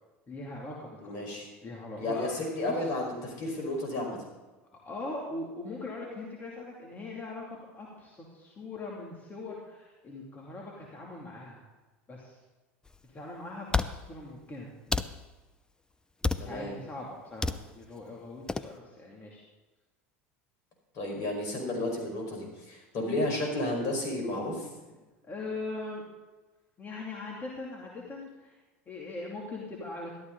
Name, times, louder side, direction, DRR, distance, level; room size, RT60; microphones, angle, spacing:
voice 1, 0.3-1.3 1.6-2.9 4.8-11.7 12.1-12.3 13.0-14.7 16.3-19.4 25.2-26.0 26.8-28.5 28.9-30.1, left 2 dB, 25° left, -3 dB, 2.7 m, -41 dB
voice 2, 1.0-1.5 2.0-4.2 16.4-16.8 20.9-24.7, left 1 dB, 55° left, 0 dB, 5.1 m, -32 dB
sound 1, 12.9-13.0 13.7-13.9 14.9-15.1 16.2-16.5 17.4-17.6 18.5-18.7, left 3 dB, 10° left, 0.6 m, -28 dB
13.0 x 13.0 x 4.0 m, 1.2 s
hypercardioid pair, 85°, 7 cm